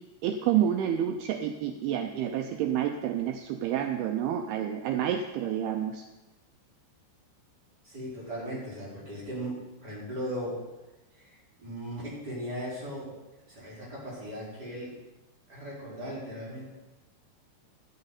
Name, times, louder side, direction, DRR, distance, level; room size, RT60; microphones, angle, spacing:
voice 1, 0.2-6.0, right 10 dB, 80° right, 5 dB, 2.3 m, -29 dB
voice 2, 7.8-10.6 11.2-11.3 11.6-13.1 13.5-14.9 15.5-16.8, equal, 20° right, -9 dB, 5.3 m, -37 dB
12.5 x 11.0 x 4.2 m, 1.1 s
omnidirectional pair, 5.0 m